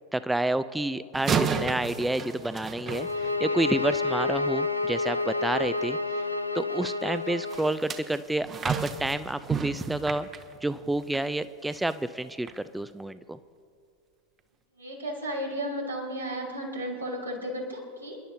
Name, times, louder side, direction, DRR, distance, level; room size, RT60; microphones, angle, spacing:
voice 1, 0.1-6.0 6.5-10.3 10.6-13.4, right 1 dB, 5° right, 14 dB, 0.3 m, -29 dB
sound 1, 1.1-3.7 7.5-11.3 11.7-11.9 12.5-12.6, right 6 dB, 25° right, 0.8 m, -32 dB
sound 2, 2.9-7.8, left 3 dB, 85° left, 0.6 m, -29 dB
voice 2, 14.8-18.2, equal, 85° right, -3 dB, 3.5 m, -34 dB
28.5 x 11.0 x 2.8 m, 2.3 s
figure-of-eight pair, 90°, 0 cm